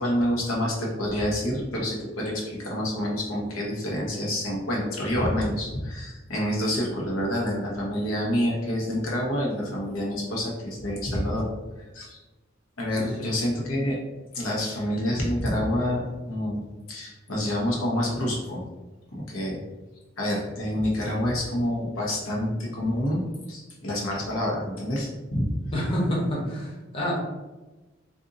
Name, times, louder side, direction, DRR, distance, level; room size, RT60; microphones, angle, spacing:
voice 1, 0.0-11.5 11.9-12.2 12.8-14.0 14.3-16.6 16.9-18.6 19.1-19.6 20.2-23.2 23.5-25.5, left 1 dB, 90° left, -3 dB, 1.0 m, -27 dB
voice 2, 13.0-13.3 25.7-27.1, equal, 25° left, -4 dB, 0.8 m, -28 dB
2.6 x 2.6 x 3.7 m, 1.1 s
head